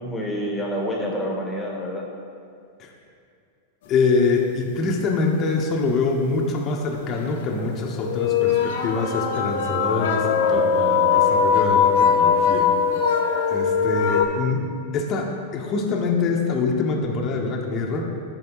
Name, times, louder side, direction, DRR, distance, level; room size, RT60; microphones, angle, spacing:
voice 1, 0.0-2.1, equal, 15° left, -2 dB, 1.4 m, -28 dB
voice 2, 3.9-12.7 13.5-14.6 14.9-18.0, left 4 dB, 35° left, 0 dB, 1.0 m, -24 dB
sound 1, 6.3-6.4 7.2-7.3 7.9-14.2, left 6 dB, 65° left, 0.6 m, -20 dB
11.0 x 4.9 x 3.1 m, 2.4 s
hypercardioid pair, 100°, 0 cm